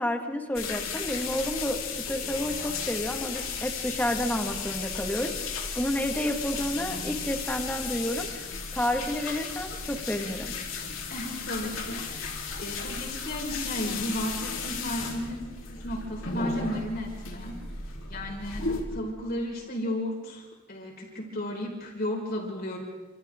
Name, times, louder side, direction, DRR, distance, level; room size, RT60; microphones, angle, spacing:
voice 1, 0.0-8.3 8.7-10.5, left 1 dB, 10° left, 3 dB, 1.9 m, -30 dB
sound 1, 0.5-18.8, left 5 dB, 85° left, 3.7 m, -35 dB
voice 2, 11.1-17.6 18.1-22.8, left 1 dB, 50° left, 0 dB, 5.6 m, -34 dB
29.0 x 27.0 x 3.8 m, 1.3 s
head